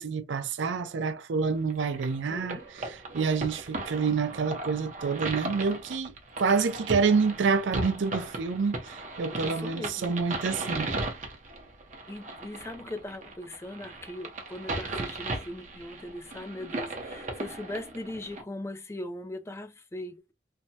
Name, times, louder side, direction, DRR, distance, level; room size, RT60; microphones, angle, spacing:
voice 1, 0.0-10.9, right 5 dB, 80° right, 0.4 m, -28 dB
sound 1, 1.7-18.4, right 2 dB, 40° right, 0.7 m, -37 dB
voice 2, 2.3-2.6 9.4-10.1 12.1-20.3, left 1 dB, 15° left, 0.3 m, -39 dB
3.3 x 2.0 x 2.7 m
head